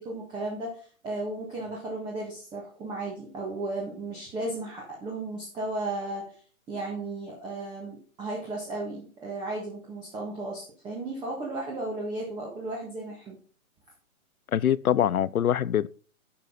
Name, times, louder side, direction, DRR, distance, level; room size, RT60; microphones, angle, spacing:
voice 1, 0.0-6.4 6.7-13.4, right 2 dB, 10° right, 1.6 m, -35 dB
voice 2, 14.5-15.9, left 10 dB, 80° left, 0.6 m, -24 dB
11.0 x 6.8 x 3.9 m
hypercardioid pair, 150°, 42 cm